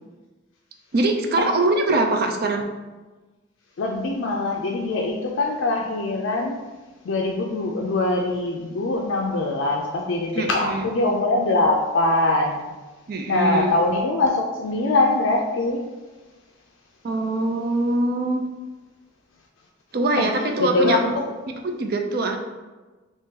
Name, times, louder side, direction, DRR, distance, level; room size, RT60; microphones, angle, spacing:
voice 1, 0.9-2.6 10.3-10.9 13.1-13.7 17.0-18.4 19.9-21.0 21.6-22.4, right 2 dB, 50° right, 4 dB, 0.4 m, -23 dB
voice 2, 3.8-6.6 7.0-12.7 13.3-15.8 20.2-20.3 20.6-21.3, left 2 dB, 75° left, 0 dB, 0.4 m, -23 dB
3.6 x 3.0 x 2.8 m, 1.2 s
head